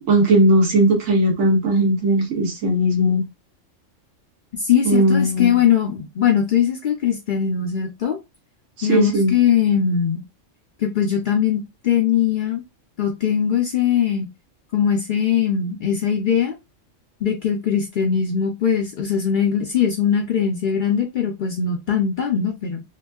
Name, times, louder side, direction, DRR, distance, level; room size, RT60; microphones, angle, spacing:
voice 1, 0.1-3.2 4.8-5.6 8.8-9.3, right 1 dB, 90° right, 1.3 m, -18 dB
voice 2, 4.6-8.2 8.8-10.2 10.8-12.6 13.0-14.3 14.7-16.6 17.2-22.8, left 8 dB, 60° left, 0.5 m, -20 dB
2.9 x 2.6 x 2.3 m
omnidirectional pair, 1.3 m